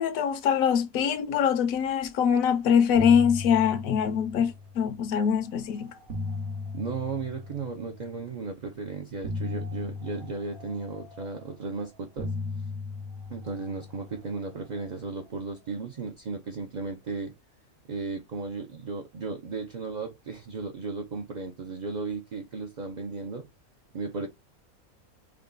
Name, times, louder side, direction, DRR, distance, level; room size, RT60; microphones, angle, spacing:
voice 1, 0.0-5.9, left 8 dB, 75° left, 1.0 m, -23 dB
sound 1, 2.3-2.5 2.8-5.1 5.8-8.2 9.2-11.7 12.2-14.8, left 3 dB, 80° right, 1.5 m, -37 dB
voice 2, 6.7-12.3 13.3-17.3 17.9-23.4 23.9-24.3, right 4 dB, 55° right, 0.5 m, -35 dB
3.7 x 2.3 x 3.7 m
omnidirectional pair, 1.5 m